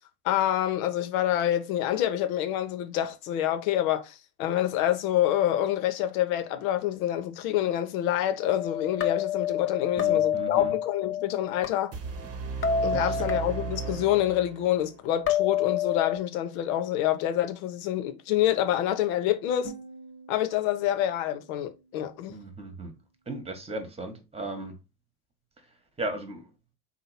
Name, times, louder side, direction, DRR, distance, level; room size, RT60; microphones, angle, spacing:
voice 1, 0.2-11.9 12.8-19.7 20.3-22.4, left 12 dB, 60° left, 0.8 m, -27 dB
sound 1, 8.4-11.7 12.6-13.9 15.3-16.2, left 8 dB, 25° left, 0.7 m, -28 dB
voice 2, 10.0-10.8 12.9-13.3 22.3-22.9 23.3-24.8 26.0-26.5, right 2 dB, 15° right, 1.3 m, -36 dB
sound 2, 11.9-14.9, right 5 dB, 30° right, 1.0 m, -35 dB
sound 3, 19.6-22.6, right 2 dB, 85° left, 2.0 m, -48 dB
4.1 x 2.9 x 4.1 m
hypercardioid pair, 70°, 46 cm